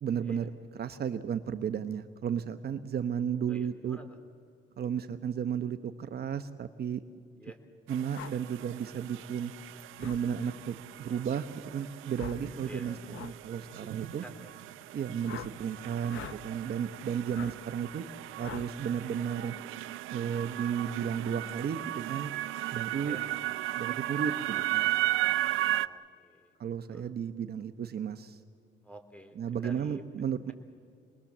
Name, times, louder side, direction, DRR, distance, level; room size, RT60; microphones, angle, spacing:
voice 1, 0.0-4.0 4.8-7.0 7.9-9.5 10.0-14.2 14.9-18.0 18.4-19.5 20.1-22.3 22.7-23.2 23.8-24.9 25.2-25.4 26.6-28.4 29.4-30.5, right 8 dB, 55° right, 10 dB, 0.9 m, -33 dB
voice 2, 3.5-4.2 7.4-7.6 11.0-11.2 12.6-13.1 13.5-14.5 17.3-17.7 23.0-23.4 25.6-26.5 26.9-27.1 28.8-30.0, equal, 5° left, 7 dB, 3.2 m, -50 dB
sound 1, 7.9-25.9, right 15 dB, 90° right, 0.5 m, -36 dB
sound 2, 8.1-8.3 10.0-10.2 12.1-12.5 13.1-13.3 15.2-15.5 16.1-16.4 17.3-17.5 18.4-18.7, left 10 dB, 75° left, 0.8 m, -42 dB
28.0 x 21.0 x 7.3 m, 2.3 s
cardioid pair, 90°, 20 cm